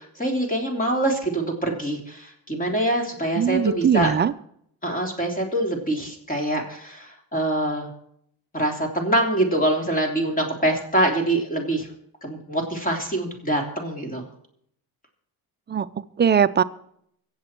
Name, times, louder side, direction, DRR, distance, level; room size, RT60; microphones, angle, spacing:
voice 1, 0.0-4.1 4.8-7.9 8.5-11.9 12.2-14.2, right 1 dB, 20° left, 2 dB, 3.4 m, -24 dB
voice 2, 3.4-4.3 15.7-16.6, right 7 dB, 30° right, 13 dB, 0.5 m, -21 dB
24.0 x 8.1 x 4.5 m, 0.69 s
cardioid pair, 120°, 37 cm